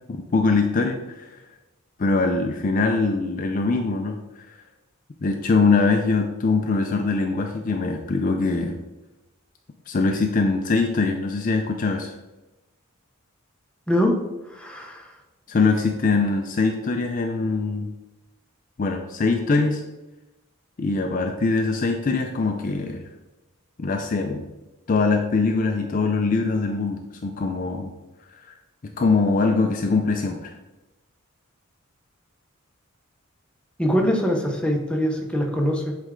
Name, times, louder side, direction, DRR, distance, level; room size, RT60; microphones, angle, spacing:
voice 1, 0.1-1.3 2.0-4.2 4.5-4.6 5.2-8.8 9.9-12.1 15.5-17.9 18.8-19.8 20.8-23.0 23.8-24.5 24.9-27.9 28.3-28.5 29.0-30.5, left 3 dB, 40° left, 4 dB, 0.4 m, -22 dB
voice 2, 14.5-15.1 33.8-36.0, equal, 5° left, 1 dB, 0.7 m, -23 dB
7.9 x 3.3 x 3.7 m, 1.0 s
head